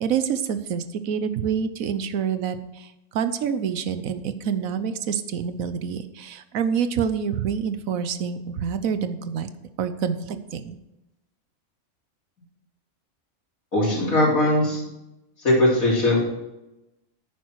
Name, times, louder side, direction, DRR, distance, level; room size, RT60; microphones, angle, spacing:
voice 1, 0.0-9.5 9.8-10.8, right 7 dB, 75° right, 11 dB, 1.2 m, -27 dB
voice 2, 13.7-14.8 15.4-16.2, left 1 dB, 70° left, -4 dB, 4.1 m, -19 dB
10.5 x 9.1 x 4.6 m, 0.95 s
omnidirectional pair, 1.5 m